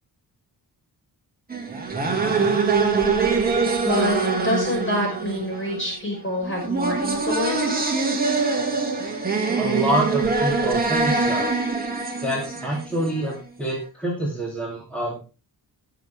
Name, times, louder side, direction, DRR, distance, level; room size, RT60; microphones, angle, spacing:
sound 1, 1.5-13.4, right 4 dB, 20° right, 2.4 m, -24 dB
voice 1, 3.8-4.2 4.4-7.9, left 2 dB, 30° left, 0 dB, 5.6 m, -26 dB
voice 2, 9.6-11.5 12.2-15.2, right 1 dB, 5° left, -4 dB, 2.8 m, -26 dB
19.0 x 6.8 x 3.5 m, 0.32 s
wide cardioid pair, 170°, 39 cm